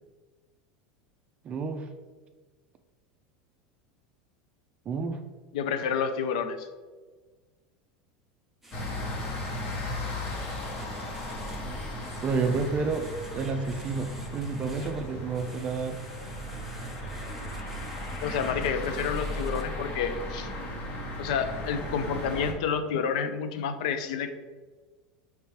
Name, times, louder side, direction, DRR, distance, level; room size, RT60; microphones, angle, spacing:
voice 1, 1.4-1.9 4.9-5.2 9.2-9.3 12.2-13.1 13.3-16.0, right 4 dB, 35° right, 6 dB, 0.4 m, -30 dB
voice 2, 5.5-6.7 18.2-20.5 21.2-24.3, left 6 dB, 75° left, 9 dB, 0.4 m, -29 dB
sound 1, 8.6-19.6, equal, 5° right, 0.8 m, -49 dB
sound 2, 8.7-22.5, left 1 dB, 45° left, 0.9 m, -36 dB
4.4 x 3.3 x 3.2 m, 1.4 s
supercardioid pair, 115°, 4 cm